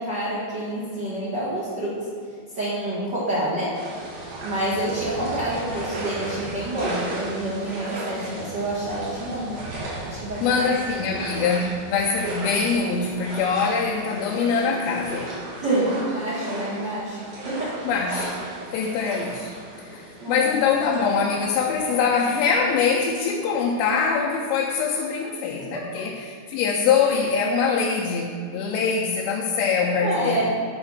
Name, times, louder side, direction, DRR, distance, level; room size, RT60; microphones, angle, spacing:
voice 1, 0.0-2.0 2.5-3.8 4.4-9.6 10.0-10.6 15.5-17.2 17.4-17.8 20.2-20.5 30.0-30.4, right 1 dB, 60° right, -10 dB, 1.1 m, -27 dB
sound 1, 3.7-22.0, right 2 dB, 85° right, 4.2 m, -35 dB
voice 2, 10.4-15.3 17.9-18.2 18.7-19.5 19.8-30.4, left 5 dB, 80° left, -3 dB, 2.4 m, -23 dB
8.9 x 4.2 x 6.2 m, 2.2 s
omnidirectional pair, 4.5 m